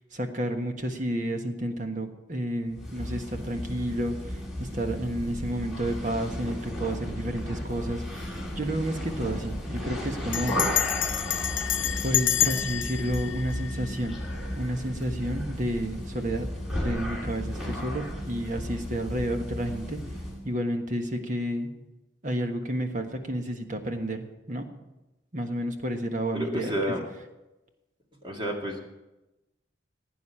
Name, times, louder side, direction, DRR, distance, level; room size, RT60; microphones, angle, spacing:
voice 1, 0.1-4.2 4.6-10.6 12.0-14.2 14.5-16.5 16.8-20.0 20.4-21.7 22.2-24.7 25.3-26.7, right 1 dB, 40° right, 5 dB, 1.4 m, -31 dB
sound 1, 2.7-20.4, left 1 dB, ahead, 2.7 m, -34 dB
Bell, 8.2-8.6 8.8-8.9 9.2-9.5 10.3-14.4, left 13 dB, 80° left, 0.7 m, -29 dB
voice 2, 26.3-27.0 28.2-28.8, equal, 25° right, 1 dB, 2.0 m, -30 dB
16.0 x 9.3 x 5.6 m, 1.0 s
head